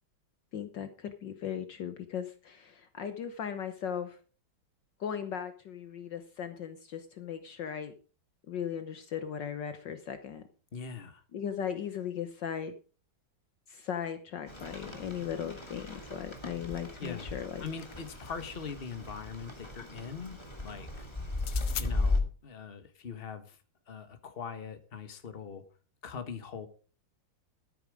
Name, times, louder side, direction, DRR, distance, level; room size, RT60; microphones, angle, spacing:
voice 1, 0.5-4.2 5.0-7.9 8.5-10.4 11.3-12.7 13.7-17.6, left 8 dB, 65° left, 9 dB, 1.6 m, -37 dB
voice 2, 10.7-11.2 17.0-21.1 21.8-23.6 23.9-25.6 26.0-26.7, left 6 dB, 30° left, 9 dB, 1.5 m, -42 dB
Rain, 14.5-22.2, left 2 dB, 15° left, 2.2 m, -36 dB
Opening and Closing Tape Measurer, 17.3-18.6 21.3-21.9, left 12 dB, 85° left, 1.7 m, -42 dB
13.5 x 9.1 x 5.0 m, 0.37 s
omnidirectional pair, 2.3 m